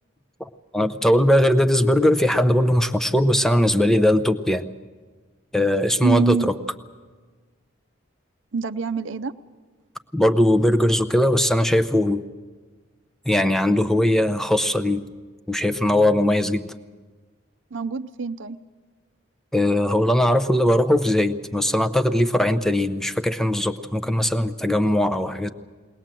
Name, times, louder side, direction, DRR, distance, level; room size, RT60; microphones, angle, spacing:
voice 1, 0.4-4.6 5.5-6.5 10.1-12.2 13.3-15.1 15.5-16.7 19.5-25.5, left 1 dB, ahead, 8 dB, 0.6 m, -20 dB
voice 2, 6.0-6.5 8.5-9.3 17.7-18.6, right 5 dB, 75° right, 9 dB, 0.6 m, -25 dB
21.5 x 19.5 x 7.6 m, 1.4 s
head